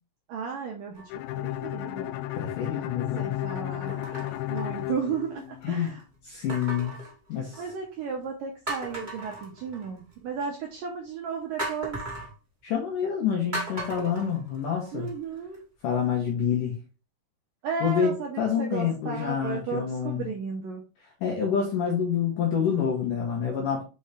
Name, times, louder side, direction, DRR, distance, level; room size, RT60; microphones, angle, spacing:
voice 1, 0.3-1.1 1.4-2.2 3.2-4.1 4.5-6.0 7.6-12.0 14.9-15.6 17.6-20.8, right 6 dB, 80° right, 1 dB, 2.0 m, -34 dB
sound 1, 0.9-1.4 2.1-2.2 3.9-5.3 6.5-7.8 8.3-8.4 8.7-10.1 11.6-12.3 13.5-15.1 15.5-15.6, right 1 dB, 25° right, 1.0 m, -37 dB
Bowed string instrument, 1.1-5.9, left 15 dB, 90° left, 2.9 m, -33 dB
voice 2, 2.4-3.4 5.6-5.9 6.2-7.0 7.3-7.6 12.6-15.1 15.8-16.8 17.8-20.3 21.2-23.8, left 7 dB, 70° left, 0 dB, 2.0 m, -27 dB
5.5 x 5.4 x 3.5 m, 0.33 s
omnidirectional pair, 5.1 m